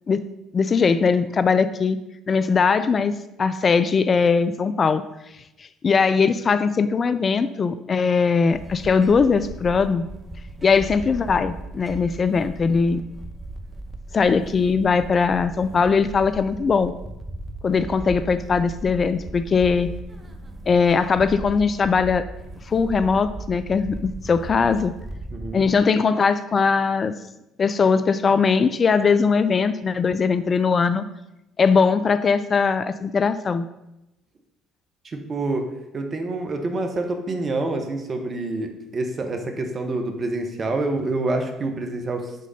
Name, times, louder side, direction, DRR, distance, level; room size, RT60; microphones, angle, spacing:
voice 1, 0.5-2.0 2.3-3.1 3.4-5.0 5.6-10.1 10.6-13.0 14.1-16.9 17.6-19.9 20.7-22.3 22.7-24.9 25.5-27.1 27.6-31.0 31.6-33.7, left 5 dB, 40° left, 12 dB, 0.3 m, -20 dB
sound 1, 8.5-25.8, right 2 dB, 20° right, 0.9 m, -37 dB
voice 2, 25.3-25.7 35.0-42.4, right 2 dB, 40° right, 5 dB, 1.1 m, -27 dB
6.5 x 3.7 x 5.4 m, 0.90 s
hypercardioid pair, 60°, 0 cm